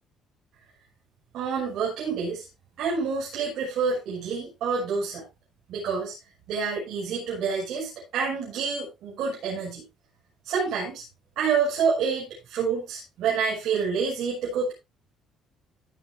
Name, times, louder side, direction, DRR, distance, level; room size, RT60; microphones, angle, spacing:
voice 1, 1.3-2.5 2.8-5.2 5.7-6.1 6.5-9.8 10.4-11.0 11.4-14.7, right 5 dB, 70° right, -5 dB, 6.4 m, -28 dB
16.5 x 9.1 x 2.7 m, 0.23 s
cardioid pair, 135°, 0 cm